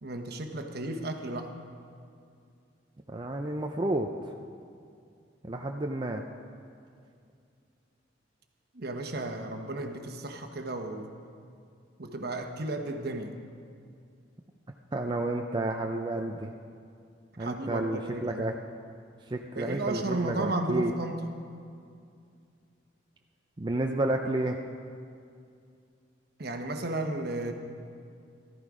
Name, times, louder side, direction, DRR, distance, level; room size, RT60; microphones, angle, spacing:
voice 1, 0.0-1.5 8.7-11.1 12.0-13.4 17.4-18.4 19.5-21.2 26.4-27.5, right 2 dB, 55° right, 5 dB, 1.1 m, -33 dB
voice 2, 3.1-4.3 5.4-6.2 14.9-16.5 17.4-18.5 19.3-20.9 23.6-24.6, right 2 dB, 25° right, 2 dB, 0.5 m, -31 dB
15.0 x 13.5 x 4.9 m, 2.3 s
head